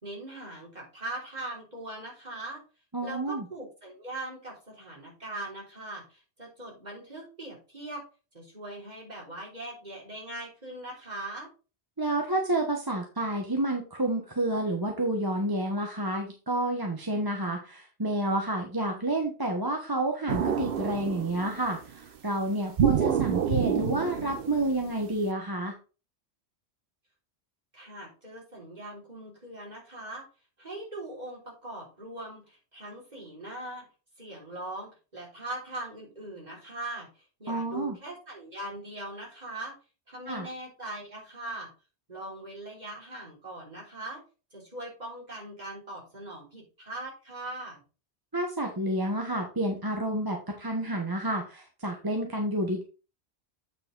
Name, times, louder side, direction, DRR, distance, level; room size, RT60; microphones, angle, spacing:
voice 1, 0.0-2.6 3.0-8.0 8.3-11.5 27.7-30.3 30.6-33.9 34.2-39.8 40.1-41.7 42.1-44.2 44.5-47.8, right 1 dB, 40° right, -2 dB, 3.6 m, -41 dB
voice 2, 2.9-3.4 12.0-25.8 37.5-38.0 40.3-40.5 48.3-52.8, right 1 dB, 20° right, 2 dB, 1.1 m, -29 dB
sound 1, 20.3-21.8 22.8-25.2, right 8 dB, 60° right, 0.9 m, -28 dB
8.5 x 4.8 x 3.8 m, 0.33 s
omnidirectional pair, 1.1 m